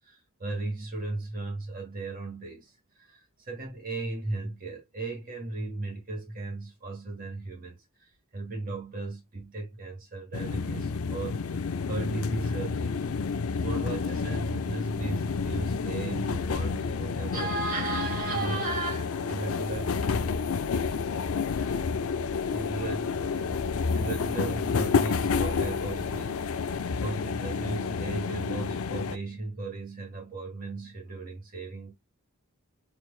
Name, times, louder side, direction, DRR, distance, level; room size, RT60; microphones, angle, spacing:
voice 1, 0.0-13.0 13.6-20.0 22.1-22.2 22.5-23.6 23.9-26.4 26.7-26.8 27.0-31.9, right 2 dB, 40° right, 1.9 m, -36 dB
sound 1, 10.3-29.2, left 5 dB, 90° left, 0.6 m, -30 dB
4.7 x 4.6 x 2.3 m
head